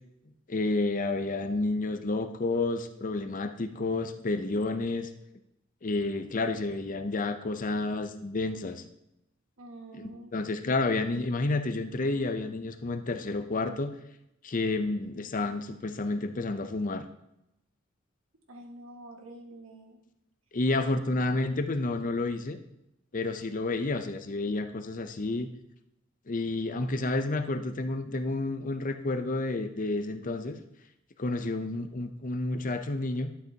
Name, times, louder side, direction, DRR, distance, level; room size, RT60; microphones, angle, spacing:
voice 1, 0.5-5.1 5.8-8.8 10.0-13.9 14.4-17.0 20.5-22.6 23.1-25.5 26.3-30.6 31.2-33.3, left 2 dB, 40° left, 8 dB, 0.6 m, -30 dB
voice 2, 9.6-10.4 18.5-20.0 20.8-20.9 31.2-31.5, right 1 dB, 80° right, 2 dB, 1.7 m, -47 dB
11.5 x 8.0 x 2.9 m, 0.84 s
head